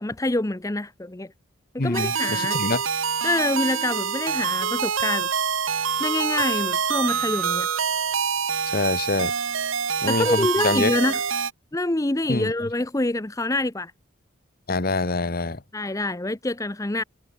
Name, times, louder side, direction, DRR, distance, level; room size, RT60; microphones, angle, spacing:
voice 1, 0.0-1.3 1.7-2.6 3.2-5.3 6.0-7.7 10.1-11.2 11.7-13.9 15.7-17.0, left 2 dB, 15° left, 0.7 m, -26 dB
voice 2, 1.8-2.8 8.7-9.3 10.0-11.0 12.3-12.5 14.7-15.6, left 3 dB, 45° left, 1.2 m, -25 dB
sound 1, 1.9-11.5, right 6 dB, 80° right, 1.6 m, -26 dB
head